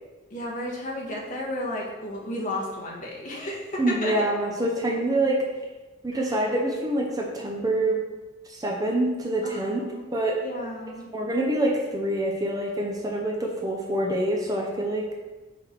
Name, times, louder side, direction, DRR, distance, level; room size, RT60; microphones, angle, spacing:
voice 1, 0.3-4.3 6.1-6.5 9.4-10.1 10.4-11.1, left 1 dB, 40° left, -4 dB, 1.5 m, -33 dB
voice 2, 3.8-5.5 6.0-8.0 8.5-9.8 10.1-10.4 11.1-15.1, right 1 dB, 20° right, -1 dB, 0.7 m, -26 dB
5.9 x 4.6 x 4.6 m, 1.2 s
head